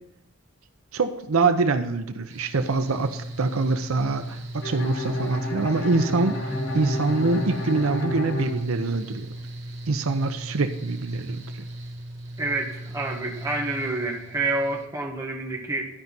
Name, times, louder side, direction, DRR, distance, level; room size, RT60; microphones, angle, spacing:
voice 1, 0.9-9.3 9.9-11.7, right 3 dB, 85° right, 9 dB, 0.7 m, -25 dB
Mechanical fan, 2.3-14.8, right 1 dB, 60° right, 1.6 m, -38 dB
Bowed string instrument, 4.6-9.4, left 1 dB, 85° left, 3.5 m, -31 dB
voice 2, 12.4-15.8, right 2 dB, 15° right, -1 dB, 1.7 m, -28 dB
12.0 x 5.4 x 5.9 m, 0.85 s
head